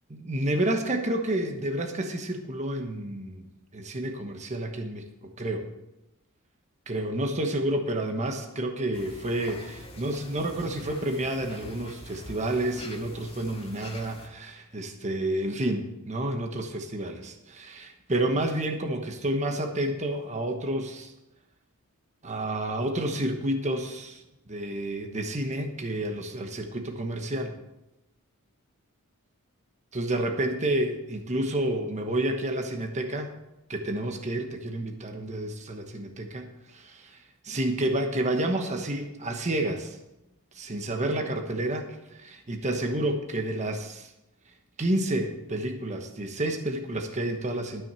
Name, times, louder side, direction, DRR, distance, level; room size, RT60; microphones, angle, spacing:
voice 1, 0.1-3.4 3.7-5.6 6.9-21.1 22.2-24.2 24.5-27.6 29.9-33.3 33.7-37.2 37.4-40.0 40.5-41.8 42.1-44.1 44.8-47.8, right 1 dB, 35° right, 4 dB, 1.1 m, -30 dB
sound 1, 8.9-14.3, left 1 dB, 25° left, 1.9 m, -45 dB
12.5 x 6.3 x 6.8 m, 0.91 s
head